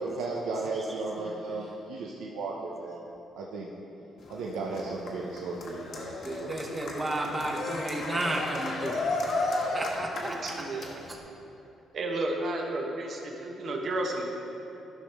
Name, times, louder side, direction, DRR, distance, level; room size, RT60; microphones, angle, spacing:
voice 1, 0.0-3.0 3.4-3.7 4.3-6.6, right 3 dB, 90° right, -3 dB, 0.7 m, -35 dB
Cheering, 4.2-11.2, left 2 dB, 65° left, 1.4 m, -34 dB
voice 2, 6.2-9.0 9.7-10.6 11.1-11.2, right 1 dB, 25° right, 1 dB, 1.1 m, -33 dB
voice 3, 10.2-10.9 11.9-14.2, right 2 dB, 55° right, 1 dB, 1.2 m, -32 dB
12.0 x 5.5 x 3.5 m, 3.0 s
cardioid pair, 90°, 0 cm